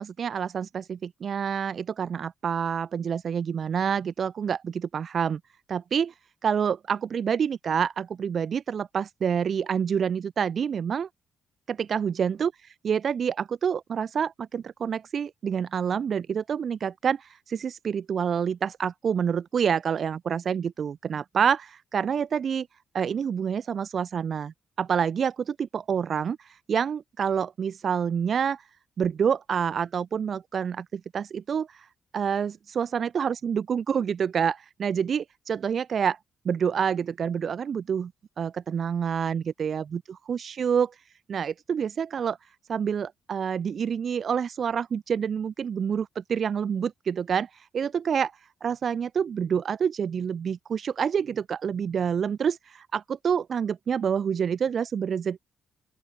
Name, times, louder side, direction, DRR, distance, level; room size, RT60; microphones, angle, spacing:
voice 1, 0.0-5.4 5.7-6.1 6.4-11.1 11.7-22.7 22.9-28.6 29.0-31.9 32.1-36.2 36.4-38.1 38.4-40.0 40.3-40.9 41.3-42.4 42.7-48.3 48.6-55.4, right 7 dB, 50° right, 1.2 m, -27 dB
open air
cardioid pair, 90°, 0 cm